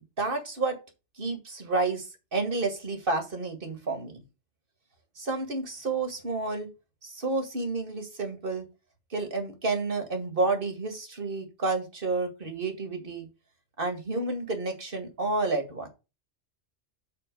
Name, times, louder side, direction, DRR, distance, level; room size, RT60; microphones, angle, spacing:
voice 1, 0.2-0.8 1.2-4.2 5.2-6.7 7.0-8.7 9.1-13.3 13.8-15.9, right 3 dB, 50° right, 5 dB, 2.2 m, -30 dB
7.2 x 4.2 x 6.5 m, 0.28 s
omnidirectional pair, 1.1 m